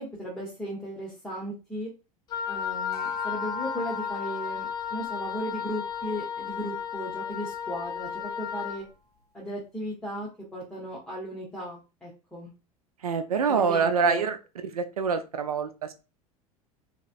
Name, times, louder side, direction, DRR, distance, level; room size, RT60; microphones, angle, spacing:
voice 1, 0.0-1.9 2.5-8.8 9.3-12.5 13.5-14.2, equal, 5° left, -6 dB, 0.9 m, -36 dB
Wind instrument woodwind instrument, 2.3-8.8, left 8 dB, 25° left, 0.3 m, -33 dB
sound 1, 2.9-7.5, right 1 dB, 90° left, 0.4 m, -43 dB
voice 2, 13.0-14.4 14.6-15.9, right 5 dB, 75° right, 9 dB, 0.5 m, -25 dB
3.8 x 2.1 x 2.5 m, 0.30 s
figure-of-eight pair, 75°, 19 cm